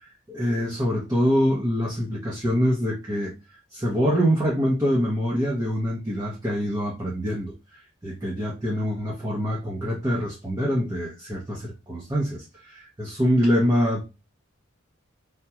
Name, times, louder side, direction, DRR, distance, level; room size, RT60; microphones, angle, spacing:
voice 1, 0.3-3.3 3.7-7.5 8.0-14.0, equal, 20° right, -4 dB, 0.6 m, -25 dB
3.4 x 2.2 x 2.8 m, 0.28 s
head